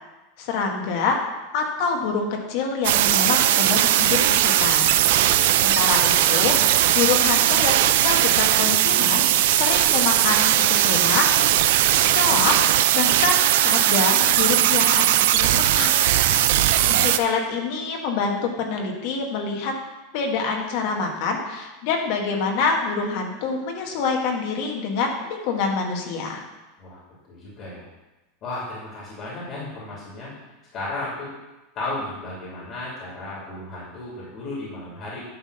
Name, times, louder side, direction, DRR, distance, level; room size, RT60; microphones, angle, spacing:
voice 1, 0.4-1.2 1.5-5.0 5.6-6.7 6.9-11.3 12.1-12.6 12.9-16.1 16.9-19.7 20.1-26.5, left 4 dB, 50° left, 2 dB, 1.5 m, -26 dB
sound 1, 2.8-17.2, right 12 dB, 65° right, 0.4 m, -19 dB
voice 2, 5.1-5.6 16.3-16.8 26.8-27.0 27.3-27.8 28.4-30.3 30.7-31.3 31.7-35.2, left 2 dB, 30° left, -6 dB, 2.6 m, -34 dB
10.5 x 3.7 x 6.7 m, 1.1 s
supercardioid pair, 170°, 0 cm